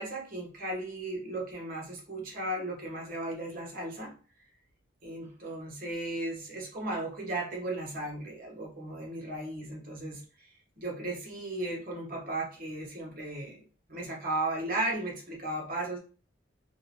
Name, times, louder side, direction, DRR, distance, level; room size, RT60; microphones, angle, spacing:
voice 1, 0.0-4.1 5.0-10.5 10.8-13.6 13.9-16.0, right 2 dB, 45° right, -1 dB, 1.1 m, -35 dB
3.0 x 2.8 x 2.8 m, 0.37 s
head